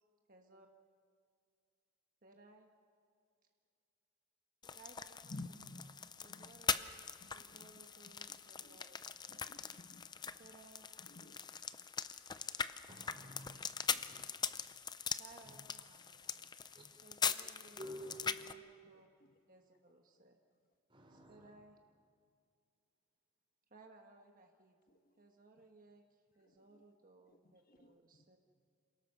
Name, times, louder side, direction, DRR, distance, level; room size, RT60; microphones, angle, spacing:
voice 1, 0.3-0.7 2.2-2.7 4.7-5.3 6.2-9.4 10.4-10.9 13.9-14.1 15.2-16.5 17.0-17.8 18.2-19.1 19.5-20.4 21.1-21.8 23.7-24.8 25.2-28.4, right 3 dB, 45° right, 3 dB, 1.3 m, -62 dB
sound 1, 4.6-18.5, left 6 dB, 20° left, 0.5 m, -42 dB
voice 2, 5.2-5.9 6.3-6.6 7.2-7.7 8.3-8.8 9.3-10.3 11.0-11.4 19.2-19.4 20.1-20.2 24.9-25.3 26.4-26.8 27.3-28.2, left 2 dB, 45° left, 6 dB, 1.3 m, -54 dB
voice 3, 12.9-13.6 14.1-14.2 15.5-15.6 16.8-16.9 17.8-18.2 20.9-21.5, equal, 25° right, 3 dB, 3.7 m, -50 dB
28.0 x 17.5 x 6.7 m, 2.3 s
head